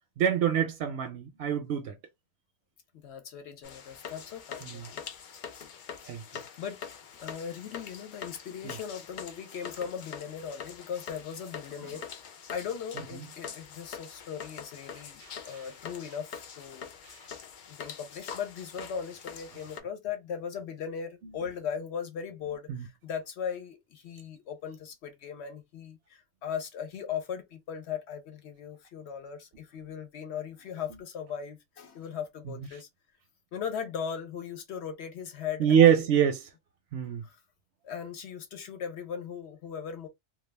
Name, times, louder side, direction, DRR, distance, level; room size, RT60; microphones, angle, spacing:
voice 1, 0.2-2.0 4.6-4.8 6.1-6.2 8.6-8.8 15.2-15.6 22.7-22.8 35.6-36.5 36.9-37.2, right 9 dB, 65° right, 0.7 m, -25 dB
voice 2, 3.0-5.0 6.4-6.8 7.2-12.1 12.5-16.9 17.7-32.9 33.5-36.0 37.2-37.4 37.8-40.1, left 7 dB, 65° left, 0.8 m, -38 dB
sound 1, 3.6-19.8, left 7 dB, 85° left, 0.4 m, -44 dB
2.3 x 2.3 x 3.2 m
omnidirectional pair, 1.4 m